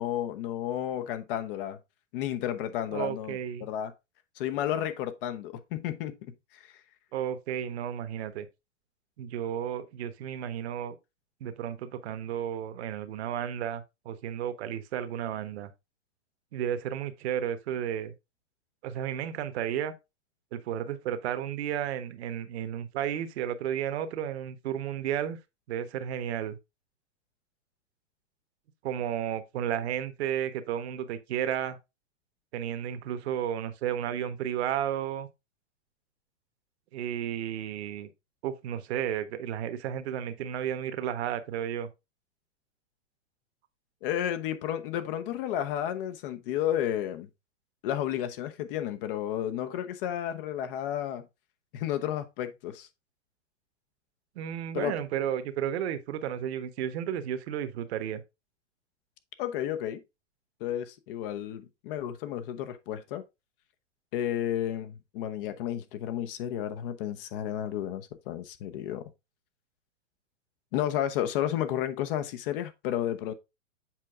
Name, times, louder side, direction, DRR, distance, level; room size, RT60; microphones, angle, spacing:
voice 1, 0.0-1.8 2.1-3.9 4.4-6.7 44.0-47.3 47.8-51.3 51.7-52.9 54.7-54.9 59.4-60.0 60.6-63.2 64.1-69.1 70.7-73.3, left 11 dB, 45° left, 1.0 m, -32 dB
voice 2, 2.9-3.7 7.1-8.5 9.2-11.0 11.4-15.7 16.5-18.1 18.8-19.9 20.5-25.4 25.7-26.6 28.8-31.8 32.5-35.3 36.9-38.1 38.4-41.9 54.3-58.2, right 10 dB, 60° right, 1.2 m, -33 dB
7.6 x 4.6 x 3.6 m
hypercardioid pair, 120°, 37 cm